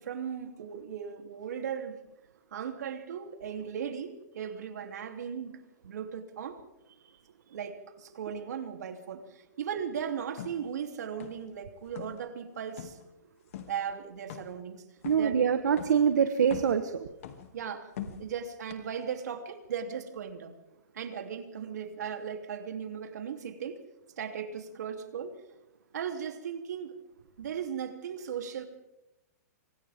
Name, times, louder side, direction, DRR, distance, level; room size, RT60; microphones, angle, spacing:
voice 1, 0.0-2.0 2.5-6.6 7.5-13.0 13.7-14.8 15.2-15.3 17.5-17.9 18.2-20.5 20.9-23.8 24.2-25.3 25.9-27.0 27.4-28.7, right 7 dB, 75° right, 5 dB, 3.3 m, -37 dB
sound 1, 10.4-10.6 11.2-11.6 11.9-12.2 12.8-13.0 13.5-13.8 14.3-14.6 15.0-15.3 15.8-16.0 16.4-16.8 17.2-17.6 18.0-18.3 18.7-18.8, left 10 dB, 50° left, 2.6 m, -42 dB
voice 2, 15.0-17.1, right 7 dB, 90° right, 8 dB, 1.5 m, -25 dB
28.5 x 25.5 x 3.7 m, 0.90 s
hypercardioid pair, 165°, 9 cm